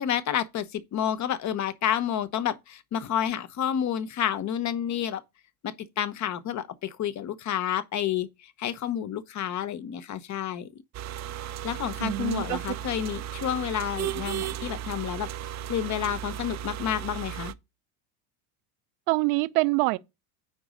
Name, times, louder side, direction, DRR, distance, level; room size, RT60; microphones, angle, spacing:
voice 1, 0.0-5.2 5.6-10.7 11.6-15.3 15.7-17.5, left 10 dB, 40° left, 1.0 m, -30 dB
sound 1, 10.9-17.5, right 11 dB, 35° right, 0.7 m, -35 dB
voice 2, 12.0-12.6 19.1-20.0, right 24 dB, 65° right, 0.9 m, -25 dB
9.3 x 3.9 x 5.1 m
hypercardioid pair, 95°, 45 cm